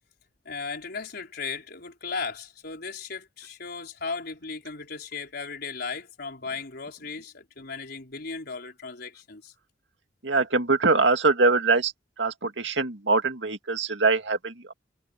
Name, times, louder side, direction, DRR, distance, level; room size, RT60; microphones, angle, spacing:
voice 1, 0.4-9.5, left 4 dB, 60° left, 4.5 m, -36 dB
voice 2, 10.2-11.9 12.2-14.7, right 3 dB, 75° right, 2.2 m, -23 dB
head